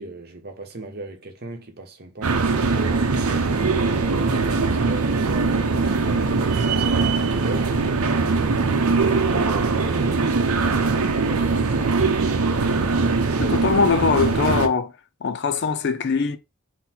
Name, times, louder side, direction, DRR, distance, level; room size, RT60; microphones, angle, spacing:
voice 1, 0.0-2.7 3.4-7.7 9.0-10.2 10.5-11.8 13.0-13.9, right 2 dB, 45° right, 1.0 m, -38 dB
sound 1, 2.2-14.7, right 4 dB, 90° right, 0.7 m, -21 dB
voice 2, 13.4-14.9 15.2-16.4, left 5 dB, 50° left, 0.4 m, -21 dB
3.9 x 2.2 x 4.3 m
head